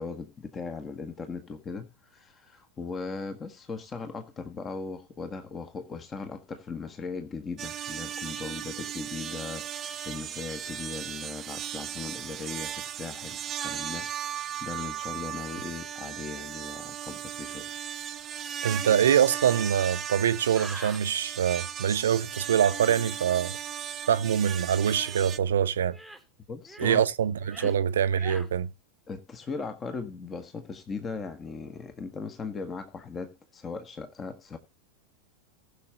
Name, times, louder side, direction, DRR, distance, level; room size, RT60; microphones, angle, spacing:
voice 1, 0.0-17.7 26.5-27.0 27.6-27.8 29.1-34.6, left 4 dB, 20° left, 1.5 m, -38 dB
sound 1, 7.6-25.4, right 9 dB, 25° right, 0.7 m, -37 dB
voice 2, 18.6-23.6 24.1-26.0 26.8-28.7, right 9 dB, 65° right, 0.7 m, -24 dB
sound 2, 20.5-21.0 25.0-25.3 25.9-26.2 26.6-27.0 27.4-27.8 28.2-28.5, equal, ahead, 1.5 m, -43 dB
19.5 x 6.7 x 2.9 m
figure-of-eight pair, 90°, 0 cm